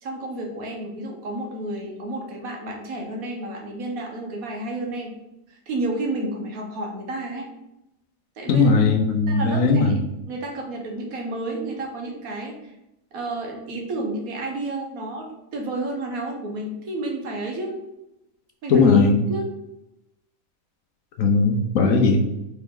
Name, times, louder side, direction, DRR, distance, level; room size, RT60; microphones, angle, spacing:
voice 1, 0.0-5.2 5.5-7.5 8.4-8.8 9.3-9.9 10.3-12.7 13.1-17.7 18.6-18.8 19.3-19.5 21.8-22.0, right 2 dB, 75° right, 1 dB, 1.5 m, -31 dB
voice 2, 8.5-9.9 18.7-19.2 21.2-22.2, left 4 dB, 70° left, 4 dB, 1.0 m, -18 dB
4.4 x 3.4 x 3.6 m, 0.88 s
omnidirectional pair, 1.5 m